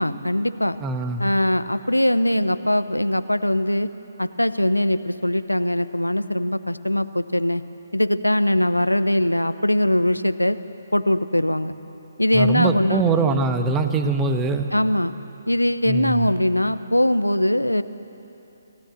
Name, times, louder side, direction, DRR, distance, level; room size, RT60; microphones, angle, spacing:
voice 1, 0.0-0.8 1.2-3.9 4.2-7.6 7.9-10.6 10.9-11.7 12.2-13.0 14.7-15.1 15.5-17.8, left 1 dB, 90° left, 13 dB, 0.8 m, -21 dB
voice 2, 0.8-1.2 12.3-14.7 15.9-16.3, right 4 dB, 15° right, 7 dB, 1.2 m, -22 dB
28.5 x 17.0 x 7.8 m, 3.0 s
figure-of-eight pair, 140°, 0 cm